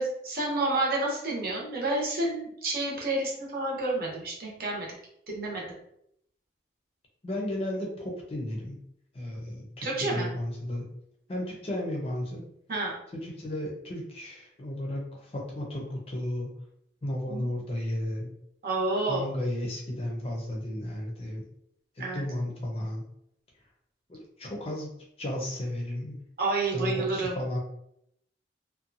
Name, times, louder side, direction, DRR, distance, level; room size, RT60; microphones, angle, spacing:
voice 1, 0.0-4.9 5.3-5.7 9.8-10.3 12.7-13.0 17.3-17.6 18.6-19.2 22.0-22.3 26.4-27.4, right 2 dB, 55° right, -3 dB, 0.8 m, -29 dB
voice 2, 7.2-8.8 9.1-10.8 11.3-12.4 13.1-16.5 17.0-18.3 19.1-21.4 22.0-23.0 24.1-24.9 25.2-26.2 26.7-27.6, left 1 dB, 35° left, -1 dB, 0.5 m, -34 dB
2.6 x 2.2 x 2.6 m, 0.74 s
head